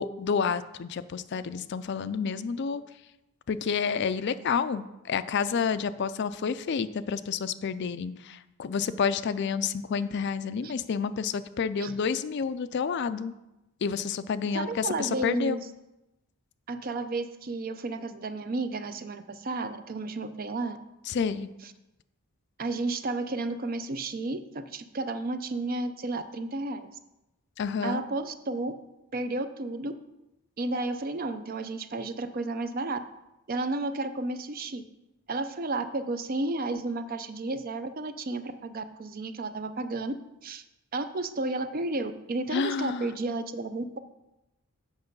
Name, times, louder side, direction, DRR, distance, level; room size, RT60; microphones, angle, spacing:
voice 1, 0.0-2.8 3.5-13.3 13.8-15.6 21.1-21.5 27.6-28.0 42.5-43.1, left 6 dB, 50° left, 13 dB, 0.4 m, -29 dB
voice 2, 14.5-15.7 16.7-20.8 22.6-26.9 27.8-28.7 29.1-29.9 30.6-33.0 33.5-34.8 35.3-40.1 40.4-40.6 40.9-44.0, right 2 dB, 40° right, 11 dB, 0.5 m, -32 dB
8.0 x 6.3 x 5.3 m, 0.95 s
head